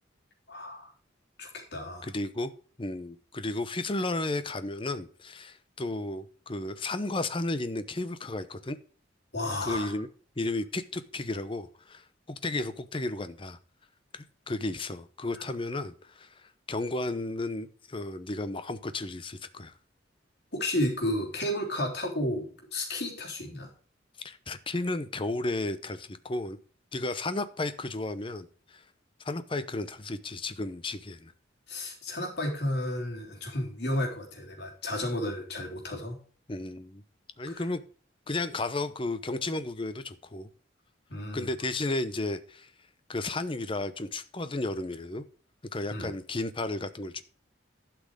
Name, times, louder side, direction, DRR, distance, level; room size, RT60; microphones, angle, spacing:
voice 1, 0.5-0.9 1.4-2.1 9.3-9.9 20.5-23.7 31.7-36.2 37.5-37.6 41.1-41.5 45.9-46.1, left 1 dB, 55° left, 3.5 m, -32 dB
voice 2, 2.0-2.5 2.8-8.8 9.6-10.1 10.4-13.6 14.1-19.7 24.2-26.6 26.9-28.8 29.2-31.3 36.5-37.0 37.4-37.8 38.3-40.5 41.3-42.7 43.1-45.2 45.7-47.2, left 2 dB, 25° left, 0.7 m, -33 dB
12.0 x 6.1 x 5.0 m
head